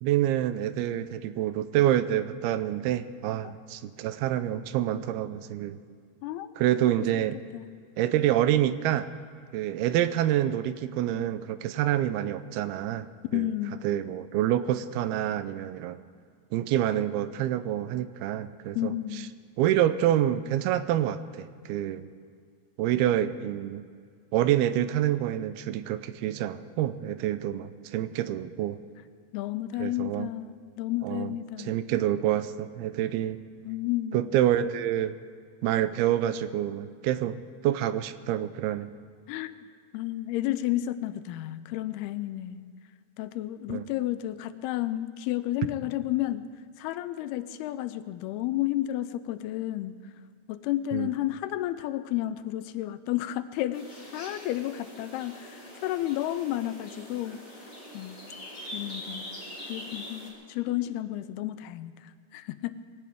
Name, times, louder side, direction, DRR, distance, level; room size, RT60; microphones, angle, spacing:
voice 1, 0.0-5.8 6.6-7.4 8.0-9.1 9.5-13.5 13.8-16.0 16.5-18.9 19.6-22.0 22.8-23.9 24.3-28.8 29.8-30.3 31.0-33.4 34.1-35.2 35.6-38.9 43.7-43.9 50.9-51.1, right 12 dB, 85° right, 13 dB, 2.6 m, -27 dB
voice 2, 6.2-6.5 7.1-7.2 7.5-7.7 13.3-13.9 18.8-19.3 29.3-31.8 33.6-34.3 39.3-39.6 39.9-42.7 43.2-46.5 46.8-50.0 50.5-57.4 57.9-58.2 58.7-59.3 59.7-62.8, left 14 dB, 90° left, 13 dB, 2.6 m, -32 dB
sound 1, 53.7-60.3, left 1 dB, 10° left, 3.5 m, -43 dB
21.0 x 17.5 x 3.6 m, 2.1 s
omnidirectional pair, 4.5 m